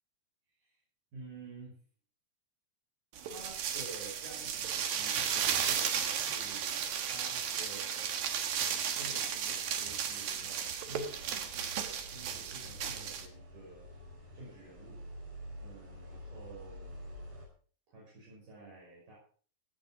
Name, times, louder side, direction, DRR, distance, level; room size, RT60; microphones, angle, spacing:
voice 1, 1.1-1.8 3.3-8.4 8.7-13.9 14.3-15.0 15.6-17.0 17.9-19.2, right 3 dB, 70° right, -5 dB, 7.5 m, -51 dB
sound 1, 3.2-13.3, right 8 dB, 90° right, 3.2 m, -34 dB
sound 2, 9.5-17.5, equal, 40° right, 7.1 m, -49 dB
17.5 x 10.5 x 4.8 m, 0.44 s
omnidirectional pair, 4.0 m